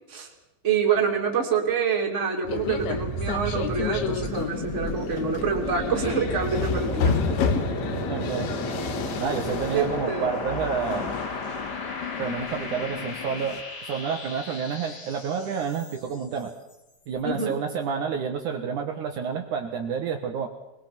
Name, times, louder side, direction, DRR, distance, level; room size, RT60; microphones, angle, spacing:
voice 1, 0.6-7.7 9.7-10.3 17.2-17.6, right 5 dB, 20° right, 1 dB, 2.1 m, -26 dB
sound 1, 2.4-16.2, left 1 dB, 35° left, 1.7 m, -33 dB
sound 2, 2.5-13.6, left 7 dB, 70° left, 3.4 m, -32 dB
voice 2, 8.1-8.5 9.2-11.1 12.2-16.5 17.1-20.5, right 6 dB, 85° right, 3 dB, 1.7 m, -29 dB
23.0 x 21.0 x 6.1 m, 0.97 s
omnidirectional pair, 5.8 m